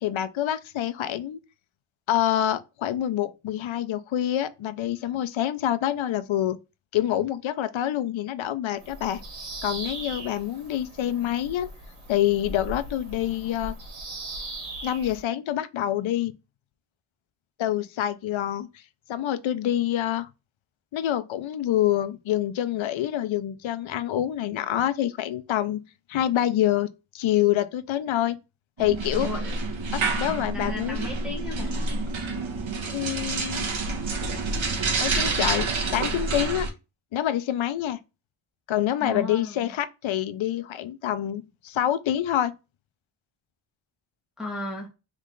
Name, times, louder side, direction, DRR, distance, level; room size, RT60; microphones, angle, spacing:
voice 1, 0.0-1.4 2.1-6.6 6.9-9.2 9.6-11.7 12.1-13.7 14.8-16.3 17.6-18.7 19.1-20.3 20.9-26.9 27.1-28.4 28.8-29.3 29.9-31.1 32.9-33.8 35.0-36.7 37.1-38.0 38.7-42.5, left 12 dB, 70° left, 0.5 m, -26 dB
Bird vocalization bird call bird song, 8.8-15.2, right 1 dB, 90° right, 1.6 m, -39 dB
sound 1, 28.8-36.7, right 3 dB, 65° right, 1.1 m, -28 dB
voice 2, 29.2-29.6 30.0-30.1 30.5-31.7 39.0-39.6 44.4-44.9, left 2 dB, ahead, 1.5 m, -35 dB
3.7 x 3.1 x 3.7 m
wide cardioid pair, 130°, 50 cm